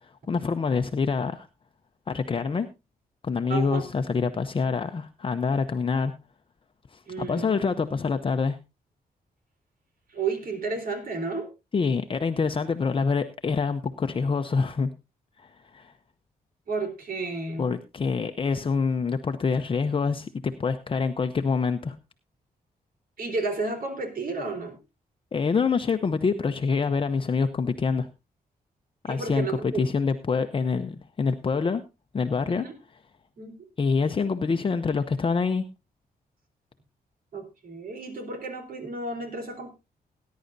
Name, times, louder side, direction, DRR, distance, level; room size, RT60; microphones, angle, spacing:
voice 1, 0.0-1.5 2.1-2.7 3.2-6.1 6.9-8.6 11.7-14.9 15.4-15.9 17.6-22.0 25.3-28.1 29.0-31.8 32.1-32.7 33.8-35.6, left 5 dB, 35° left, 7 dB, 0.7 m, -26 dB
voice 2, 3.5-3.8 7.1-7.7 10.1-11.5 16.7-17.8 23.2-24.8 29.1-29.7 32.5-32.7 33.4-33.5 37.3-39.7, right 3 dB, 65° right, 5 dB, 3.8 m, -32 dB
19.0 x 10.5 x 2.7 m, 0.25 s
cardioid pair, 115°, 16 cm